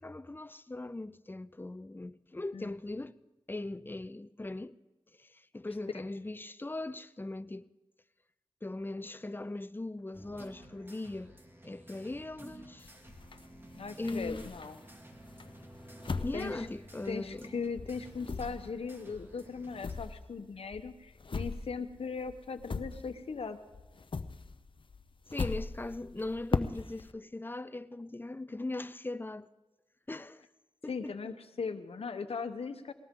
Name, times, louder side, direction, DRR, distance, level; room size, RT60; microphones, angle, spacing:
voice 1, 0.0-3.2 3.5-4.8 5.2-7.7 8.6-11.4 11.6-12.9 14.0-14.5 16.2-17.5 25.3-29.5 30.1-30.4 30.8-31.1, left 2 dB, 20° left, 0.6 m, -39 dB
sound 1, 10.1-19.9, right 1 dB, 20° right, 2.4 m, -52 dB
sound 2, 12.8-14.9 15.4-17.5 17.8-23.5 23.7-27.1, left 4 dB, 60° left, 0.7 m, -39 dB
voice 2, 13.8-14.8 16.3-16.7 17.1-23.6 30.9-32.9, left 5 dB, 85° left, 1.0 m, -39 dB
20.5 x 18.5 x 3.8 m
cardioid pair, 50°, 10 cm